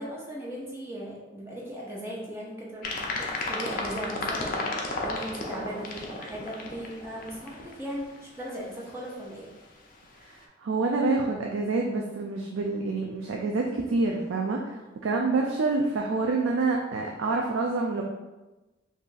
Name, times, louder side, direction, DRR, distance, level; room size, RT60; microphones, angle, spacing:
voice 1, 0.0-3.1 3.4-9.5, equal, 15° right, -5 dB, 0.6 m, -38 dB
sound 1, 2.8-8.3, left 2 dB, 45° left, 0.4 m, -33 dB
voice 2, 10.2-18.0, right 3 dB, 85° right, 0 dB, 0.3 m, -27 dB
2.6 x 2.5 x 3.8 m, 1.1 s
head